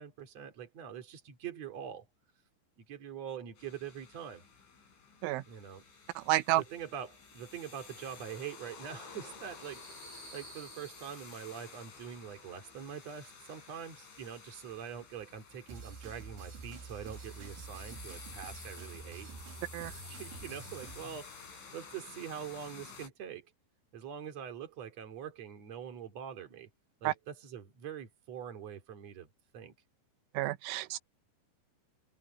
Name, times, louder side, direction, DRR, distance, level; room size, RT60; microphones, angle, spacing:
voice 1, 0.0-2.1 2.8-4.4 5.5-5.8 6.6-19.3 19.8-21.5 21.7-23.5 23.9-26.7 27.0-29.3 29.5-29.7, right 8 dB, 40° right, 3.3 m, -44 dB
sound 1, 3.6-23.1, left 5 dB, 80° left, 9.8 m, -52 dB
voice 2, 6.2-6.6 19.7-19.9 27.1-27.2 30.3-31.0, right 16 dB, 90° right, 3.3 m, -30 dB
sound 2, 15.7-21.2, right 5 dB, 70° right, 5.6 m, -48 dB
omnidirectional pair, 5.4 m